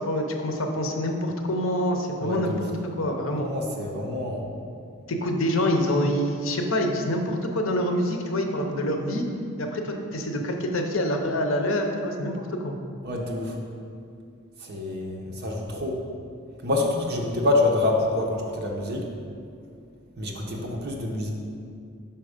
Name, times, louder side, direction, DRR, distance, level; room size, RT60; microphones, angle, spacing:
voice 1, 0.0-2.5 3.0-3.5 5.1-9.2 9.6-12.8, left 1 dB, 70° left, 3 dB, 0.7 m, -26 dB
voice 2, 2.2-2.7 3.4-4.5 13.0-13.6 14.6-16.0 16.6-19.1 20.2-21.3, left 2 dB, 50° right, 0 dB, 0.9 m, -27 dB
5.7 x 4.5 x 5.0 m, 2.4 s
head